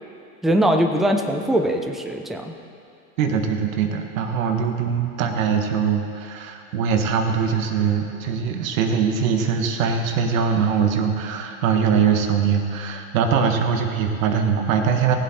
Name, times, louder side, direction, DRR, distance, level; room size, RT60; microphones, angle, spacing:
voice 1, 0.4-2.5, right 1 dB, ahead, 3 dB, 0.6 m, -21 dB
voice 2, 3.2-15.2, right 6 dB, 70° right, 4 dB, 1.6 m, -22 dB
18.5 x 7.6 x 4.3 m, 2.5 s
hypercardioid pair, 115°, 42 cm